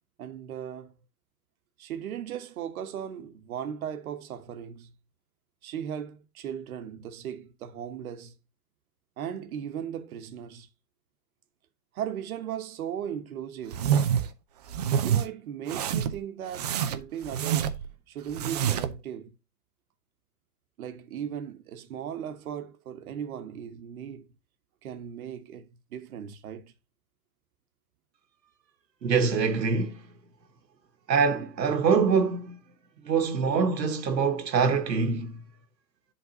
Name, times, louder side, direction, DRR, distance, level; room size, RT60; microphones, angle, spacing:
voice 1, 0.2-0.9 1.8-5.0 5.6-8.4 9.2-10.7 11.9-13.9 15.0-17.8 18.1-19.4 20.8-24.3 24.8-26.7, right 9 dB, 55° right, 1.2 m, -37 dB
sound 1, 13.7-14.3 14.7-15.2 15.7-16.2 16.5-17.9 18.3-19.0, right 9 dB, 25° right, 0.4 m, -27 dB
voice 2, 29.0-30.0 31.1-32.6 33.1-35.4, right 5 dB, 80° right, 1.3 m, -24 dB
10.5 x 4.0 x 2.8 m
hypercardioid pair, 120°, 49 cm